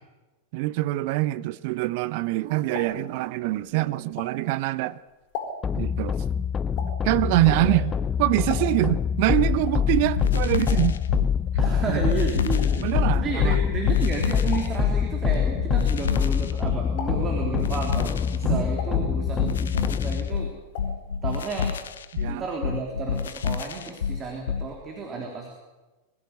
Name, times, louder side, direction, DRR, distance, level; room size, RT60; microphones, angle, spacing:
voice 1, 0.5-5.0 5.7-6.2 7.0-11.0 11.9-12.0 12.8-13.6 18.5-18.7 22.1-22.4, right 18 dB, 50° right, 0.6 m, -25 dB
sound 1, 2.2-4.7 5.1-9.0 9.3-16.6 16.9-17.5 18.0-19.7 20.0-21.1 21.3-21.4 21.7-21.8, left 4 dB, 45° left, 4.4 m, -40 dB
sound 2, 5.6-20.3, left 7 dB, 20° left, 0.6 m, -25 dB
voice 2, 7.3-7.8 11.6-12.9 13.1-20.6 21.2-21.8 22.3-25.5, right 4 dB, 25° right, 3.4 m, -32 dB
sound 3, 10.0-24.7, left 7 dB, 65° left, 1.1 m, -29 dB
22.5 x 14.5 x 8.4 m
figure-of-eight pair, 90°, 0 cm